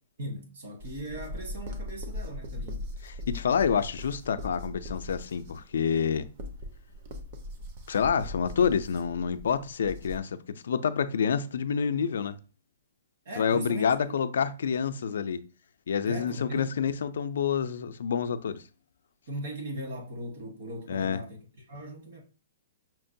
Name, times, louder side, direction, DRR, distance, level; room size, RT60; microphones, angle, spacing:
voice 1, 0.2-2.9 13.2-14.1 16.1-16.7 19.3-21.4 21.7-22.2, right 1 dB, 50° right, 1.3 m, -39 dB
sound 1, 0.8-10.2, left 1 dB, 30° right, 0.6 m, -40 dB
voice 2, 3.0-6.3 7.9-12.4 13.4-15.4 15.9-18.6 20.9-21.2, left 7 dB, 65° left, 0.3 m, -28 dB
5.7 x 2.2 x 2.6 m
hypercardioid pair, 175°, 0 cm